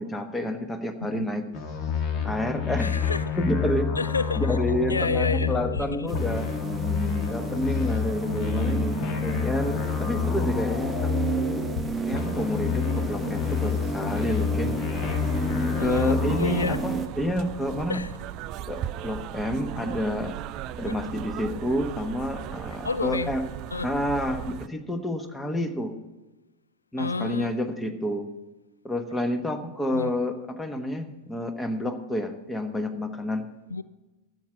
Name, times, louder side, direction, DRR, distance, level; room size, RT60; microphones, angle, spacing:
voice 1, 0.0-1.4 2.2-2.9 3.4-3.9 4.4-6.5 7.3-11.3 12.1-14.8 15.8-18.0 18.7-20.4 20.8-23.4 23.8-25.9 26.9-28.3 28.8-33.5, left 1 dB, 10° left, 1.2 m, -29 dB
sound 1, 1.5-5.8 6.1-11.8 12.1-16.7, left 7 dB, 35° left, 1.5 m, -28 dB
voice 2, 2.8-3.4 4.0-4.6 4.9-6.1 15.8-16.8 17.9-18.1 20.9-21.0 22.8-23.3 23.7-23.9 27.0-27.5 29.9-30.1 33.7-33.8, left 4 dB, 75° left, 0.3 m, -30 dB
sound 2, 6.1-17.1, right 4 dB, 10° right, 0.9 m, -32 dB
sound 3, 14.9-24.7, right 11 dB, 40° right, 0.4 m, -37 dB
12.0 x 8.3 x 5.9 m
figure-of-eight pair, 90°, 0 cm